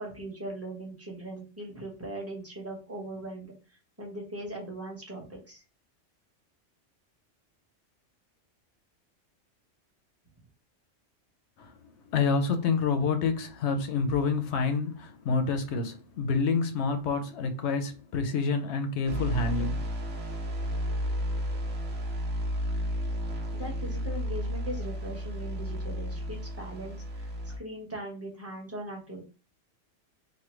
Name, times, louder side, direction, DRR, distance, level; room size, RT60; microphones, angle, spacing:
voice 1, 0.0-3.5 4.0-5.6 23.5-27.3 27.6-29.3, right 1 dB, 15° right, 0.9 m, -39 dB
voice 2, 12.1-19.9, left 4 dB, 70° left, 0.8 m, -28 dB
sound 1, 19.1-27.6, equal, 75° right, 1.1 m, -32 dB
3.1 x 2.2 x 3.0 m
omnidirectional pair, 1.3 m